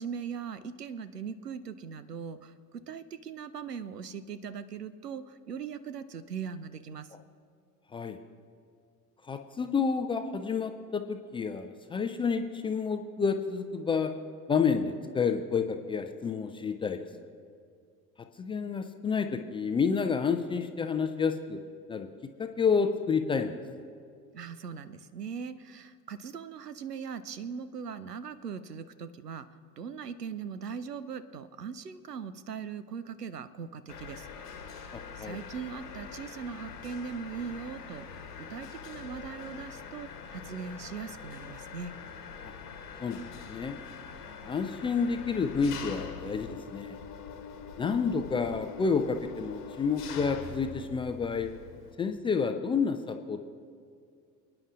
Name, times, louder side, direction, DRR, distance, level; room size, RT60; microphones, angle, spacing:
voice 1, 0.0-7.1 24.3-29.5 29.8-34.3 35.2-41.9, right 6 dB, 85° right, 14 dB, 0.6 m, -40 dB
voice 2, 9.3-14.1 14.5-17.3 18.4-21.6 21.9-22.1 22.4-23.5 34.9-35.4 43.0-43.8 44.4-47.0 47.8-51.5 52.0-53.5, left 5 dB, 15° left, 7 dB, 0.3 m, -29 dB
Mechanisms, 33.9-51.9, left 6 dB, 75° left, 1.3 m, -44 dB
28.5 x 9.7 x 2.5 m, 2.3 s
figure-of-eight pair, 70°, 46 cm